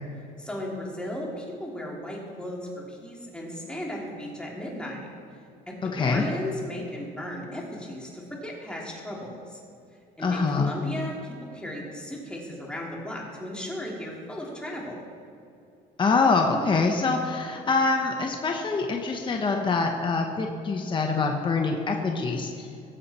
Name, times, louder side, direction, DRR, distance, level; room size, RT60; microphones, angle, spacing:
voice 1, 0.4-2.6 2.9-5.1 5.7-9.6 10.2-15.0, left 1 dB, 5° left, -3 dB, 3.1 m, -36 dB
voice 2, 5.8-6.2 10.2-10.7 16.0-22.7, left 4 dB, 30° left, 2 dB, 1.2 m, -25 dB
19.5 x 7.6 x 4.4 m, 2.6 s
cardioid pair, 110°, 17 cm